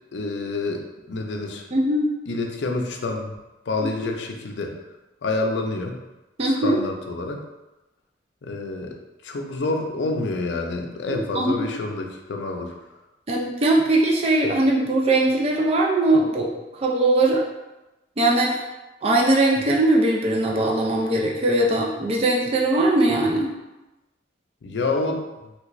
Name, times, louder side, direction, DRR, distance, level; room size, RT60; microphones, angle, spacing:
voice 1, 0.1-1.7 2.3-3.3 3.7-4.8 5.2-6.0 6.4-7.4 8.4-8.9 9.2-12.7 24.6-25.2, left 3 dB, 65° left, 3 dB, 0.4 m, -28 dB
voice 2, 1.7-2.1 6.4-6.8 11.1-11.6 13.3-16.5 16.8-17.4 18.2-18.6 19.0-23.5, right 2 dB, 30° right, -1 dB, 0.4 m, -20 dB
3.3 x 2.4 x 3.0 m, 1.0 s
head